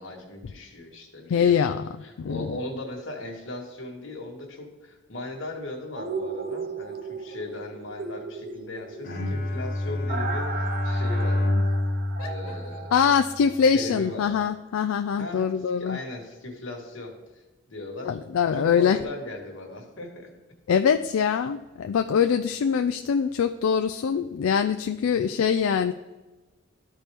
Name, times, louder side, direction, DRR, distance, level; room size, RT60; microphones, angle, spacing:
voice 1, 0.0-11.6 12.2-12.9 13.7-14.4 15.2-17.4 17.7-18.2 18.5-20.3 22.8-22.9 25.1-25.3, left 2 dB, 65° left, 1 dB, 1.6 m, -38 dB
voice 2, 1.3-1.8 2.2-2.5 12.2-12.3 12.9-16.0 18.0-19.0 20.7-25.9, left 7 dB, 85° left, 7 dB, 0.3 m, -23 dB
sound 1, 6.0-13.8 14.2-14.3, right 4 dB, 45° right, 0.7 m, -36 dB
Bowed string instrument, 9.0-13.4, left 1 dB, 45° left, 1.0 m, -27 dB
13.0 x 4.4 x 3.5 m, 1.2 s
head